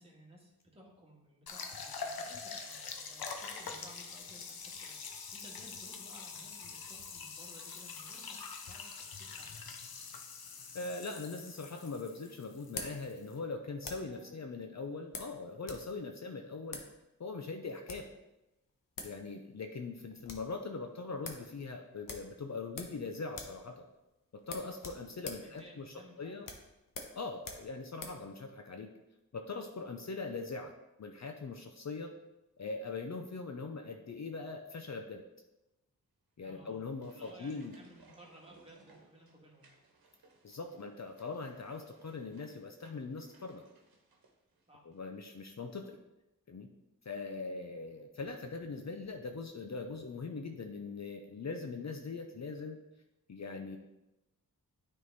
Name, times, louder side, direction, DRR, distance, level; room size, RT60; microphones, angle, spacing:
voice 1, 0.0-8.4 8.6-9.6 13.9-14.3 25.4-26.5 36.4-36.8 37.1-39.7 44.7-44.9 45.6-45.7, equal, 15° right, -2 dB, 1.8 m, -57 dB
sound 1, 1.5-13.4, left 5 dB, 90° left, 0.8 m, -45 dB
voice 2, 10.7-16.8 17.2-18.1 19.0-23.8 24.5-26.5 27.1-28.9 29.3-30.7 31.0-32.1 32.6-35.2 36.4-37.8 40.4-43.6 44.8-46.0 46.5-46.7 47.0-52.8 53.3-53.8, left 4 dB, 50° left, 4 dB, 0.7 m, -41 dB
sound 2, 11.4-14.2 15.1-16.2 16.7-16.9 17.7-18.2 18.7-18.8 19.0-19.2 19.5-19.6 19.9-20.5 20.9-21.0 21.2-21.5 22.0-23.0 23.3-23.6 23.9-24.0 24.4-28.2, left 3 dB, 65° left, 1.1 m, -46 dB
sound 3, 36.4-45.1 45.3-45.4, right 3 dB, 90° right, 1.2 m, -63 dB
9.3 x 3.9 x 4.0 m, 0.97 s
wide cardioid pair, 70°, 35 cm